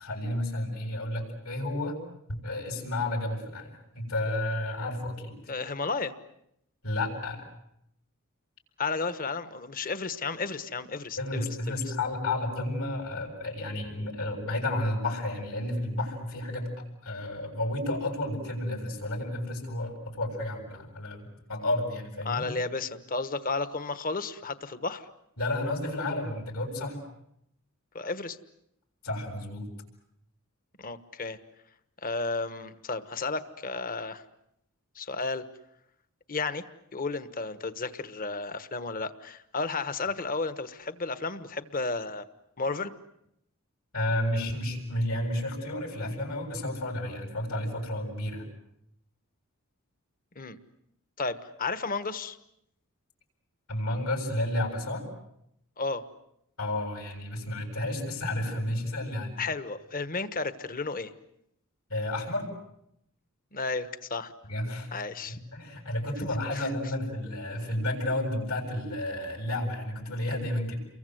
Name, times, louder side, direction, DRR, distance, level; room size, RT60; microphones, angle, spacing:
voice 1, 0.0-2.0 2.3-5.4 6.8-7.4 11.2-22.5 25.4-27.0 29.0-29.7 43.9-48.5 53.7-55.0 56.6-59.4 61.9-62.5 64.5-64.9 65.3-70.7, left 1 dB, 80° left, 0 dB, 7.9 m, -31 dB
voice 2, 5.5-6.1 8.8-11.4 22.2-25.1 27.9-28.4 30.8-31.4 32.0-34.2 34.9-35.5 36.3-36.6 36.9-42.2 42.6-42.9 50.3-50.6 51.2-52.4 55.8-56.1 59.4-61.1 63.5-64.3 64.9-65.4 66.5-66.7, left 3 dB, 40° left, 12 dB, 1.3 m, -33 dB
30.0 x 23.0 x 8.0 m, 0.77 s
head